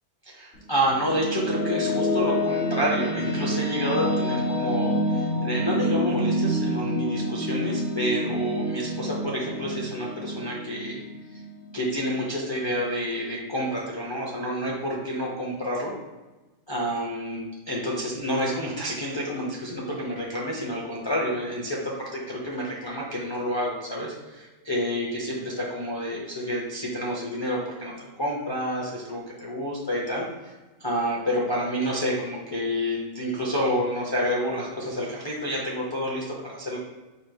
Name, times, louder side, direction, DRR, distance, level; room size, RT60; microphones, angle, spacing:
voice 1, 0.2-11.0 11.3-11.4 11.7-15.9 16.7-30.5 30.8-36.8, equal, 25° left, -4 dB, 0.5 m, -29 dB
sound 1, 0.6-11.9, equal, 55° left, 0.9 m, -27 dB
5.1 x 2.0 x 4.7 m, 1.1 s
omnidirectional pair, 1.7 m